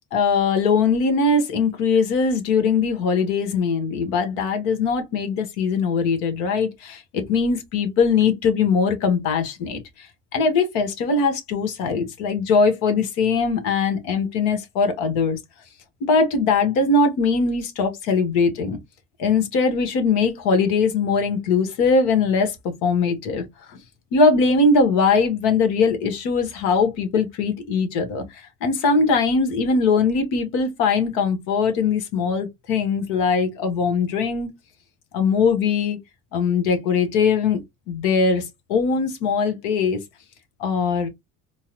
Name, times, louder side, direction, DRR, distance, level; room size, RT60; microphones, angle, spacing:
voice 1, 0.1-10.1 10.3-15.4 16.0-18.8 19.2-22.5 22.8-23.8 24.1-34.5 35.1-36.0 36.3-37.6 37.9-40.0 40.6-41.1, left 4 dB, 70° left, 1.2 m, -21 dB
4.4 x 2.0 x 2.8 m
hypercardioid pair, 65°, 43 cm